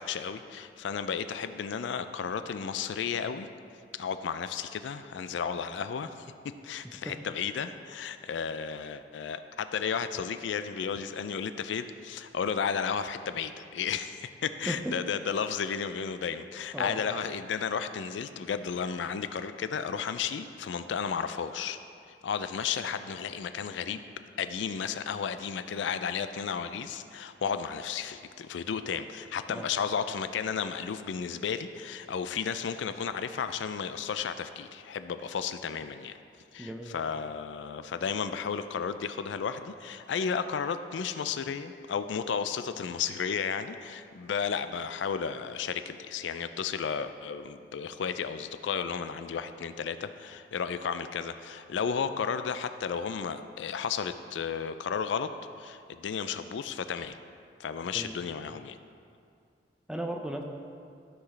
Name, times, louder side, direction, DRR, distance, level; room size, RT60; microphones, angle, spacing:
voice 1, 0.0-3.5 4.0-6.3 6.6-21.8 22.2-24.0 24.4-36.2 36.5-55.3 55.6-57.2 57.6-58.8, left 6 dB, 75° left, 11 dB, 0.4 m, -33 dB
voice 2, 36.6-37.0 57.9-58.1 59.9-60.4, right 1 dB, 5° right, 2 dB, 0.6 m, -36 dB
13.5 x 6.0 x 3.2 m, 2.3 s
head